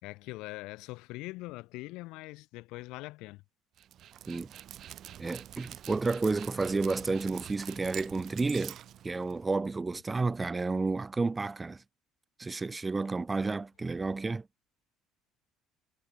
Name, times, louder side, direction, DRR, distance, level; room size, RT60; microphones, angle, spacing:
voice 1, 0.0-3.4, left 21 dB, 80° left, 4.4 m, -42 dB
Dog, 3.8-9.6, right 11 dB, 55° right, 3.0 m, -46 dB
voice 2, 5.2-8.8 9.0-11.8 12.4-14.5, right 3 dB, 20° right, 2.1 m, -31 dB
cardioid pair, 110°, 0 cm